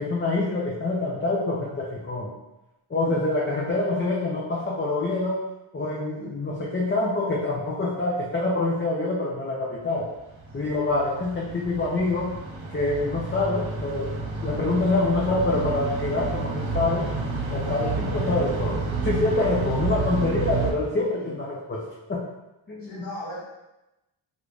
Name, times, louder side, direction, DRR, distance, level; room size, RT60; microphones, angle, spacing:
voice 1, 0.0-2.3 2.9-5.4 5.7-10.1 10.5-12.3 12.7-17.1 17.5-22.2 22.7-23.1, left 2 dB, 25° left, -4 dB, 0.5 m, -26 dB
sound 1, 10.3-20.7, right 3 dB, 65° right, 0.8 m, -30 dB
voice 2, 22.8-23.4, left 1 dB, 45° left, -8 dB, 1.5 m, -38 dB
3.4 x 2.5 x 3.1 m, 0.94 s
wide cardioid pair, 70°, 49 cm